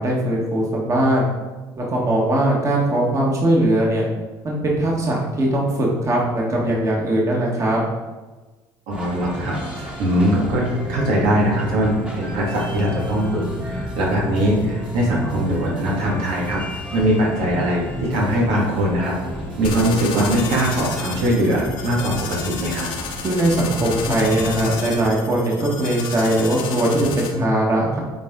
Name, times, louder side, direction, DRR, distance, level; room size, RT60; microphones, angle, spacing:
voice 1, 0.0-1.3 1.8-4.1 4.4-7.8 23.2-28.0, right 1 dB, 35° right, -3 dB, 1.8 m, -20 dB
sound 1, 8.9-24.7, equal, 10° right, 1.4 m, -31 dB
voice 2, 8.9-19.1 19.6-22.9, right 1 dB, 85° right, -4 dB, 2.3 m, -21 dB
sound 2, 9.4-20.0, left 1 dB, 15° left, 1.4 m, -37 dB
sound 3, 19.6-27.3, left 5 dB, 70° left, 1.2 m, -32 dB
8.4 x 4.4 x 3.9 m, 1.2 s
cardioid pair, 105°, 9 cm